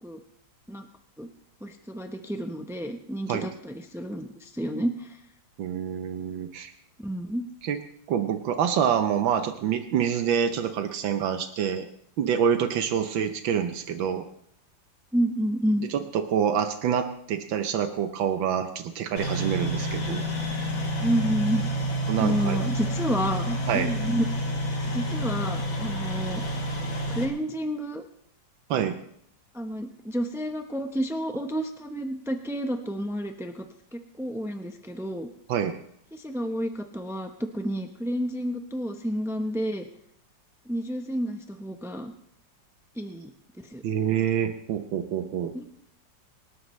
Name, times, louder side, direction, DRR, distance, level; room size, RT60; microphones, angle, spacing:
voice 1, 1.6-5.2 7.0-7.5 15.1-15.9 21.0-21.6 22.2-24.6 24.9-26.4 27.1-28.0 29.5-33.7 33.9-35.3 36.1-39.9 40.7-42.1 42.9-43.3 43.6-43.8 45.5-45.7, equal, 5° right, 5 dB, 0.3 m, -30 dB
voice 2, 5.6-6.7 7.6-7.8 8.1-11.9 12.2-14.2 15.9-20.3 22.1-22.7 23.7-23.9 28.7-29.0 35.5-35.7 43.8-45.5, right 8 dB, 85° right, 8 dB, 1.6 m, -26 dB
sound 1, 19.2-27.2, right 1 dB, 85° left, 3.4 m, -29 dB
26.5 x 12.5 x 3.2 m, 0.71 s
omnidirectional pair, 2.1 m